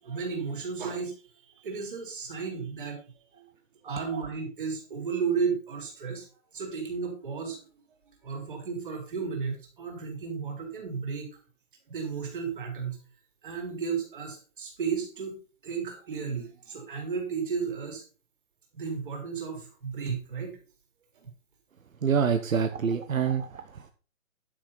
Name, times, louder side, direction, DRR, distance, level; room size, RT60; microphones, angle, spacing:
voice 1, 0.0-3.0 3.4-3.5 3.8-6.3 6.5-7.6 8.2-11.3 11.9-13.0 13.4-15.4 15.6-18.0 18.7-20.6 21.1-21.3, right 5 dB, 40° right, 2 dB, 4.1 m, -33 dB
voice 2, 22.0-23.9, right 6 dB, 75° right, 8 dB, 1.2 m, -27 dB
11.5 x 6.3 x 5.6 m, 0.37 s
hypercardioid pair, 175°, 40 cm